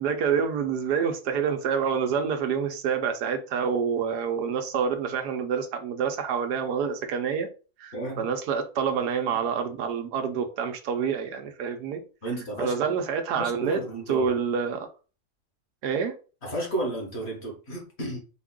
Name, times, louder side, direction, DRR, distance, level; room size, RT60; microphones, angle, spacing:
voice 1, 0.0-7.5 7.8-12.0 12.6-13.8 14.1-14.9 15.8-16.1, right 6 dB, 85° right, 1.3 m, -27 dB
voice 2, 7.9-8.3 12.2-12.7 13.4-14.3 16.4-18.2, right 1 dB, 45° left, 1.4 m, -32 dB
4.3 x 2.4 x 3.6 m
omnidirectional pair, 1.7 m